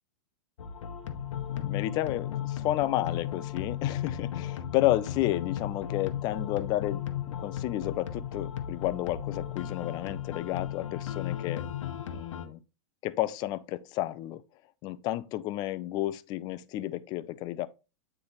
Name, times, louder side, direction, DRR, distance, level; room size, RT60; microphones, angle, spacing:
sound 1, 0.6-12.5, left 6 dB, 90° left, 1.0 m, -41 dB
sound 2, 1.0-12.0, left 12 dB, 55° left, 0.7 m, -36 dB
voice 1, 1.5-7.0 7.4-11.7 12.1-12.6 13.0-14.4 14.8-17.7, left 15 dB, 25° left, 0.4 m, -31 dB
8.6 x 3.3 x 3.9 m
supercardioid pair, 150°, 16 cm